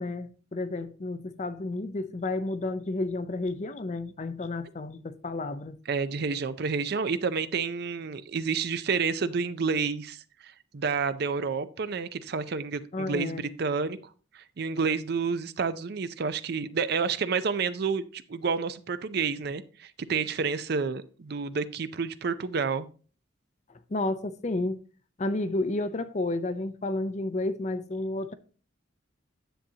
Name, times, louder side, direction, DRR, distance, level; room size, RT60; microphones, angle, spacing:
voice 1, 0.0-5.8 12.9-13.4 23.9-24.8 25.2-28.3, left 2 dB, 35° left, 0.5 m, -31 dB
voice 2, 5.9-10.2 10.4-14.0 14.3-22.9, right 5 dB, 55° right, 0.5 m, -29 dB
10.0 x 7.6 x 2.8 m
head